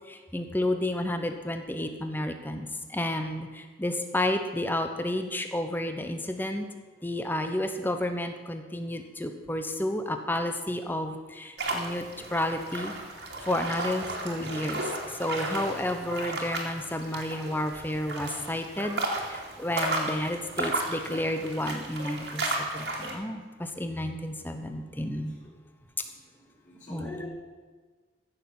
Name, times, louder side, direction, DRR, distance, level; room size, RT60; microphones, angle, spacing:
voice 1, 0.1-6.6 7.0-12.0 12.3-12.9 13.4-14.8 15.2-19.0 19.3-25.3 26.9-27.2, left 1 dB, 10° left, 7 dB, 0.9 m, -31 dB
sound 1, 11.6-23.1, right 2 dB, 70° right, 2.4 m, -34 dB
voice 2, 24.1-24.7 25.3-25.5 26.0-27.3, left 1 dB, 40° left, -9 dB, 4.2 m, -46 dB
15.5 x 6.5 x 7.2 m, 1.4 s
head